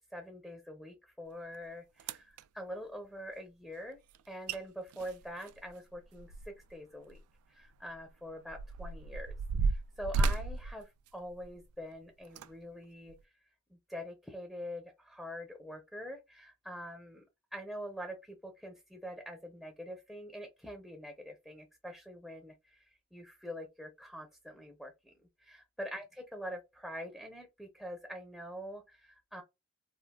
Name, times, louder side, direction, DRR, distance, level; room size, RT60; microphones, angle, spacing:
voice 1, 0.1-4.0 4.3-7.2 7.5-9.3 9.6-13.3 13.7-17.3 17.5-25.1 25.4-29.4, equal, ahead, 0.6 m, -45 dB
sound 1, 1.5-1.6 2.0-2.4 4.1-4.2 4.5-4.6 4.9-6.7 7.1-7.2 7.9-11.7 12.2-12.5 13.1-13.2, right 3 dB, 70° right, 0.3 m, -34 dB
3.4 x 2.2 x 2.2 m
head